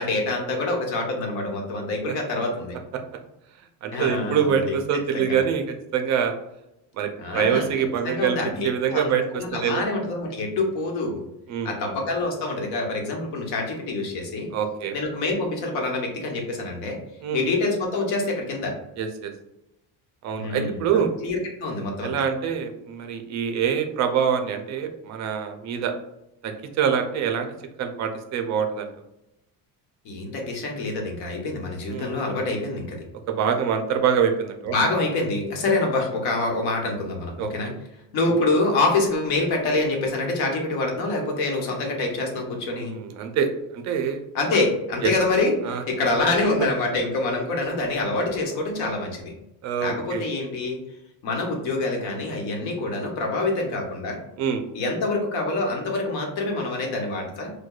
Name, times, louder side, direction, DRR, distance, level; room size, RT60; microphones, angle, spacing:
voice 1, 0.0-2.8 3.9-4.7 5.1-5.4 7.2-7.7 8.0-11.2 11.6-14.5 14.9-17.0 17.3-18.7 20.3-22.1 30.0-33.0 34.7-37.7 38.1-43.0 44.3-49.3 49.8-50.8 51.2-54.2 54.7-57.5, left 2 dB, 85° left, 1 dB, 1.1 m, -26 dB
voice 2, 3.8-5.6 5.9-6.3 7.0-8.4 8.6-9.9 11.5-11.9 14.5-14.9 17.2-17.4 19.0-19.3 20.2-21.1 22.0-25.9 26.4-27.5 27.8-28.9 31.9-32.1 33.4-34.7 37.4-37.5 42.7-43.5 43.7-44.2 45.0-45.1 45.6-45.8 49.6-50.2 54.4-54.6, right 7 dB, 45° right, 6 dB, 0.4 m, -25 dB
4.6 x 2.2 x 2.3 m, 0.89 s
cardioid pair, 160°, 39 cm